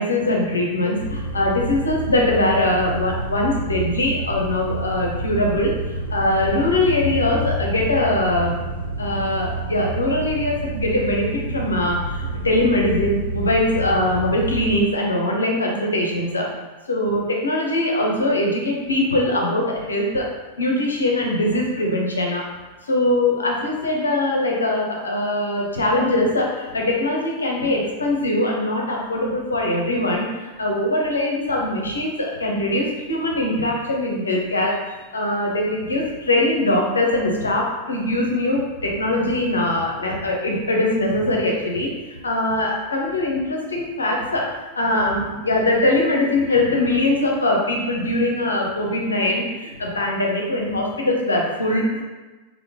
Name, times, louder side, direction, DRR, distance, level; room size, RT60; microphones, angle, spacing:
voice 1, 0.0-8.6 9.0-16.5 16.9-20.3 20.6-22.4 22.8-52.0, left 1 dB, 75° left, -1 dB, 0.6 m, -22 dB
sound 1, 0.9-14.8, right 1 dB, 90° right, 0.4 m, -28 dB
3.4 x 2.0 x 2.9 m, 1.2 s
figure-of-eight pair, 90°, 0 cm